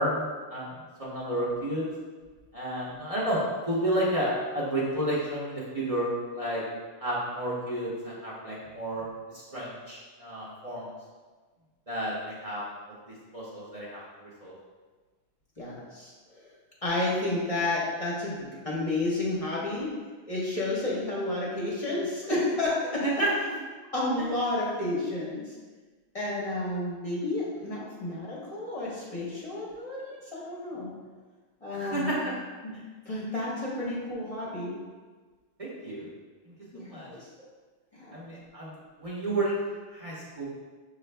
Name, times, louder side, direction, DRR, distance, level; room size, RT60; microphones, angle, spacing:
voice 1, 0.0-1.8 2.5-6.6 7.0-9.0 9.3-10.9 11.9-12.6 13.3-14.0 14.4-14.5 23.0-23.3 31.7-32.3 35.6-36.1 36.5-36.6 36.9-37.1 38.1-39.6 39.9-40.5, right 1 dB, 35° right, -7 dB, 0.8 m, -31 dB
voice 2, 15.6-16.5 16.8-19.9 20.3-23.2 23.9-25.6 26.1-30.9 31.6-32.2 32.6-32.7 33.1-34.8 36.7-37.3 37.9-38.1, left 2 dB, 35° left, -6 dB, 0.9 m, -31 dB
6.1 x 2.4 x 3.3 m, 1.4 s
omnidirectional pair, 1.1 m